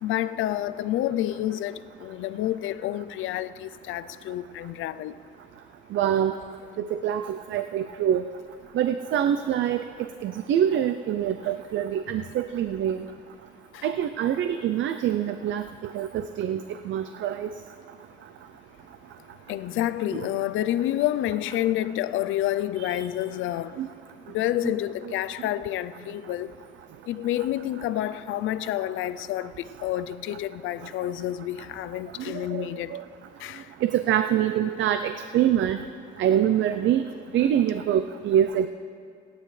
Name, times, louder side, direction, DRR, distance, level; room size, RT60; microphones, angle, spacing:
voice 1, 0.0-5.1 13.7-13.9 19.5-23.8 24.3-26.6 27.1-33.0 33.4-33.7, left 13 dB, 85° left, 0.5 m, -29 dB
voice 2, 5.9-6.3 6.8-8.2 8.7-9.8 10.2-13.1 13.8-15.6 15.9-17.5 22.8-23.0 23.8-23.9 24.6-24.7 32.5-32.6 32.9-33.0 33.8-35.8 36.2-37.0 37.3-38.7, right 10 dB, 70° right, 0.5 m, -25 dB
25.0 x 9.5 x 3.2 m
cardioid pair, 90°, 20 cm